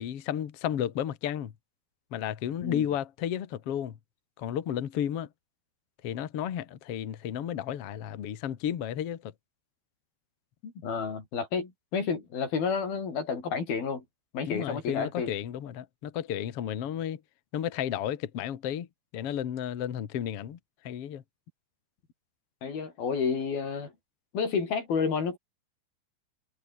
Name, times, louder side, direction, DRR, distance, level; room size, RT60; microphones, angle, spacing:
voice 1, 0.0-1.5 2.1-4.0 4.4-5.3 6.0-9.3 14.5-17.2 17.5-18.9 19.1-20.6 20.8-21.2, left 10 dB, 80° left, 1.3 m, -32 dB
voice 2, 10.6-14.0 14.3-15.3 22.6-23.9 24.3-25.4, left 5 dB, 55° left, 6.7 m, -30 dB
omnidirectional pair, 5.4 m